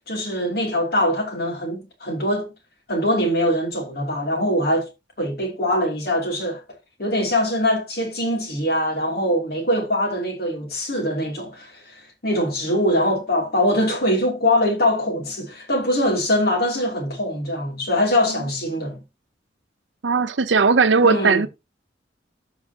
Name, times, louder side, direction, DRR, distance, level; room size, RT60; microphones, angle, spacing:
voice 1, 0.1-2.5 2.9-4.9 5.2-6.6 7.0-19.0 21.0-21.4, left 1 dB, 55° left, 2.9 m, -22 dB
voice 2, 20.0-21.5, right 4 dB, 85° right, 0.7 m, -17 dB
14.0 x 4.9 x 2.8 m
head